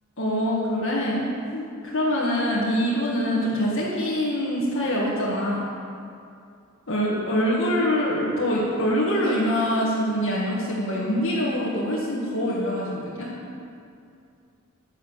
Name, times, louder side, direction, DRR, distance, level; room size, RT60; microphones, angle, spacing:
voice 1, 0.2-5.7 6.9-13.3, equal, 65° left, -7 dB, 1.9 m, -24 dB
10.5 x 9.4 x 7.3 m, 2.5 s
head